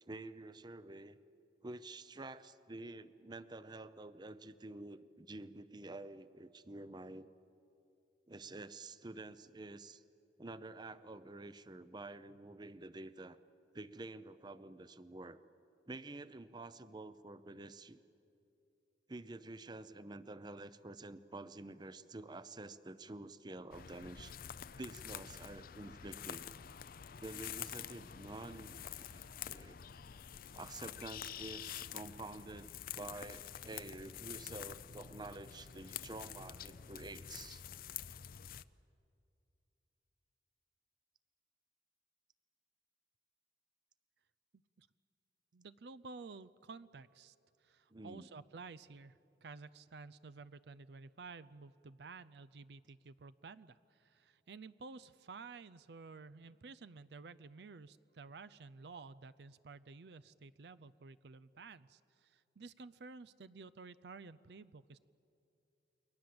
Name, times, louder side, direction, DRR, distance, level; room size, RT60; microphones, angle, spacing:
voice 1, 0.0-1.2 1.6-7.3 8.3-10.0 10.4-13.4 13.7-15.4 15.9-18.0 19.1-24.3 24.8-26.5 27.2-29.8 30.5-37.6 47.9-48.3, right 2 dB, 25° right, 14 dB, 0.7 m, -49 dB
sound 1, 23.7-38.6, left 9 dB, 50° left, 0.5 m, -48 dB
voice 2, 45.5-65.0, right 4 dB, 65° right, 16 dB, 0.5 m, -52 dB
29.5 x 22.5 x 7.8 m, 2.7 s
head